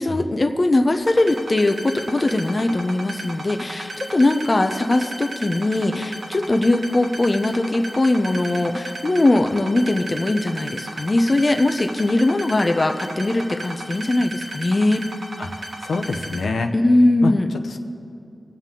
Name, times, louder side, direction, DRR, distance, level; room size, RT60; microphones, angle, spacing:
voice 1, 0.0-15.0 16.7-17.5, left 2 dB, 30° left, 6 dB, 0.6 m, -20 dB
sound 1, 1.0-16.4, right 1 dB, 65° right, 1.5 m, -34 dB
voice 2, 15.4-16.7 17.2-17.3 17.6-17.8, left 3 dB, 85° left, 4 dB, 0.7 m, -26 dB
21.5 x 7.4 x 3.7 m, 2.6 s
wide cardioid pair, 100°, 0 cm